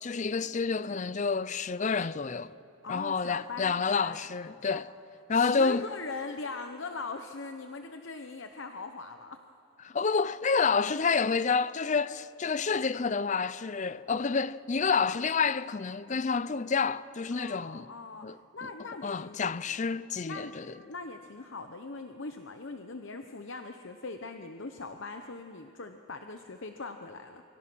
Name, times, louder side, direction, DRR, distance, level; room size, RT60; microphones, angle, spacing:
voice 1, 0.0-2.5 2.9-4.9 5.3-5.8 9.8-17.9 18.2-18.4 19.0-20.7, left 5 dB, 35° left, 0.4 m, -29 dB
voice 2, 2.8-4.3 4.7-4.8 5.3-9.4 17.3-19.7 20.2-27.4, left 3 dB, 60° left, 0.9 m, -41 dB
28.0 x 23.5 x 6.2 m
head